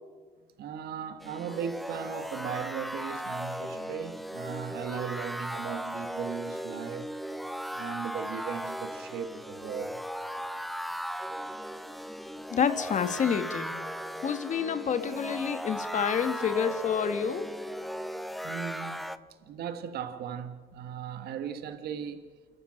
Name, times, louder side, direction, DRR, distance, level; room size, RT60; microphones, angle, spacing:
voice 1, 0.6-7.1 7.7-10.0 18.4-19.0 19.4-22.3, right 8 dB, 70° right, 1.4 m, -37 dB
sound 1, 1.2-19.2, equal, ahead, 0.8 m, -37 dB
voice 2, 12.5-13.7 14.2-17.5, left 7 dB, 45° left, 1.9 m, -28 dB
28.5 x 12.5 x 7.4 m
cardioid pair, 110°, 17 cm